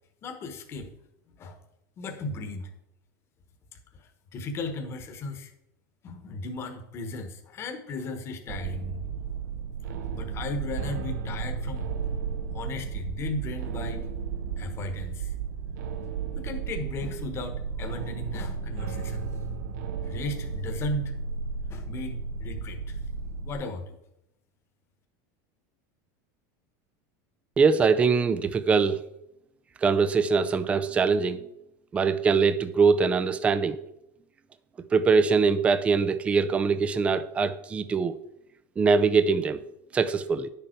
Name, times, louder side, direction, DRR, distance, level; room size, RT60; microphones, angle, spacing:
voice 1, 0.2-0.9 1.4-1.6 2.0-2.7 3.9-5.5 6.0-9.0 10.1-11.9 12.5-14.1 14.6-15.3 16.4-19.3 20.0-21.2 21.7-23.0 23.4-23.9, left 2 dB, 25° left, 6 dB, 1.2 m, -36 dB
sound 1, 8.5-23.5, right 5 dB, 80° right, 0.8 m, -34 dB
voice 2, 27.6-29.0 29.8-31.4 31.9-33.8 34.9-38.1 38.8-39.6 39.9-40.5, right 5 dB, 15° right, 12 dB, 0.4 m, -22 dB
10.5 x 6.8 x 4.5 m, 0.84 s
supercardioid pair, 165°, 9 cm